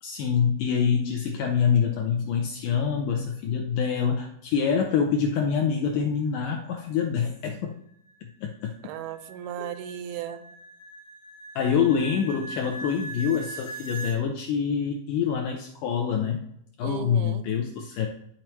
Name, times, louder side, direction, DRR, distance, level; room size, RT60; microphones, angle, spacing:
voice 1, 0.0-7.8 8.4-8.7 9.6-9.7 11.6-16.4 16.8-18.1, left 7 dB, 80° left, 2 dB, 1.9 m, -26 dB
sound 1, 7.5-14.2, right 2 dB, 60° left, 1.2 m, -41 dB
voice 2, 8.8-10.4 16.8-17.5, right 10 dB, 85° right, 11 dB, 2.4 m, -36 dB
12.0 x 4.4 x 3.0 m, 0.71 s
omnidirectional pair, 4.3 m